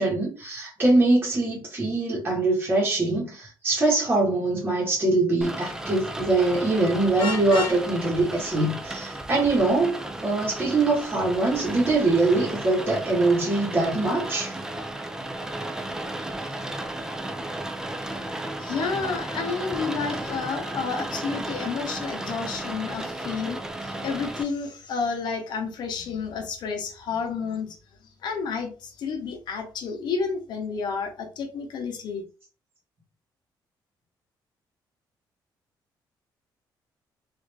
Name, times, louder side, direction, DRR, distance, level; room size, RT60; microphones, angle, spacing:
voice 1, 0.0-14.6, right 2 dB, 25° right, 1.1 m, -23 dB
Rain, 5.4-24.4, right 1 dB, 5° right, 0.3 m, -34 dB
Vehicle horn car horn honking, 7.2-7.8, left 3 dB, 90° left, 1.0 m, -29 dB
voice 2, 18.6-27.8 28.2-32.2, left 5 dB, 65° left, 0.8 m, -30 dB
3.1 x 2.5 x 3.3 m
cardioid pair, 160°, 8 cm